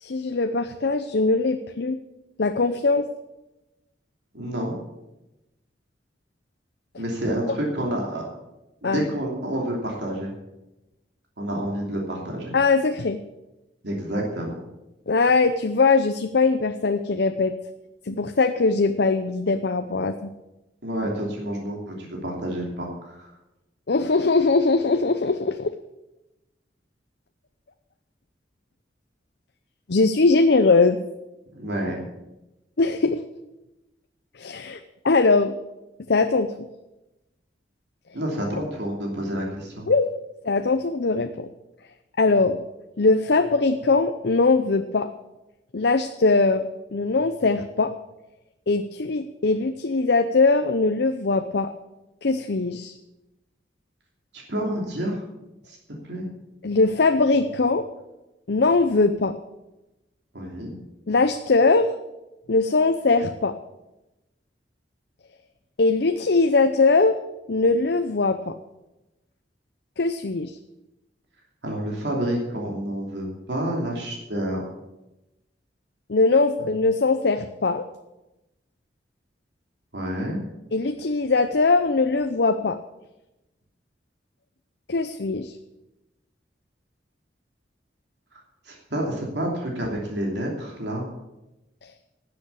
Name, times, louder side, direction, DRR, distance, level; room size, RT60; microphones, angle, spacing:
voice 1, 0.0-2.0 2.4-3.1 8.8-9.0 12.5-13.2 15.1-17.5 18.1-20.3 23.9-25.7 29.9-31.0 32.8-33.2 34.4-34.8 35.0-35.5 36.1-36.5 39.9-40.1 40.4-41.5 42.2-42.6 43.0-45.1 45.7-47.9 48.7-51.7 52.2-52.9 56.6-57.8 58.5-59.3 61.1-61.9 62.5-63.5 65.8-67.2 67.5-68.5 70.0-70.6 76.1-77.8 80.7-82.8 84.9-85.5, left 3 dB, 65° left, 8 dB, 0.7 m, -21 dB
voice 2, 4.3-4.7 7.0-8.2 8.8-10.3 11.4-12.5 13.8-14.6 20.8-23.3 31.5-32.0 38.1-39.9 54.5-55.2 55.7-55.8 56.0-56.3 60.3-60.8 71.6-74.7 79.9-80.4 88.7-91.1, right 1 dB, 70° right, -1 dB, 2.9 m, -29 dB
12.5 x 7.9 x 8.4 m, 0.97 s
head